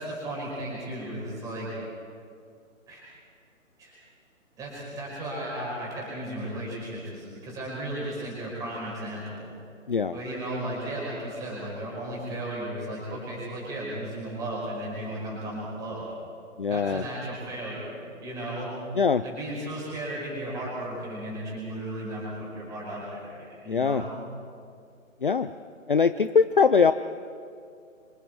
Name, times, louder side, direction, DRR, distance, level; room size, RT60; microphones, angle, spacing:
voice 1, 0.0-1.7 2.9-3.0 3.8-4.0 4.6-9.5 10.1-16.0 16.7-18.7 19.2-24.1, right 1 dB, 10° right, -4 dB, 5.2 m, -35 dB
voice 2, 9.9-10.2 16.6-17.0 18.9-19.2 23.7-24.0 25.2-25.5 25.9-26.9, left 5 dB, 40° left, 12 dB, 0.4 m, -22 dB
27.0 x 25.0 x 4.7 m, 2.3 s
hypercardioid pair, 165°, 40 cm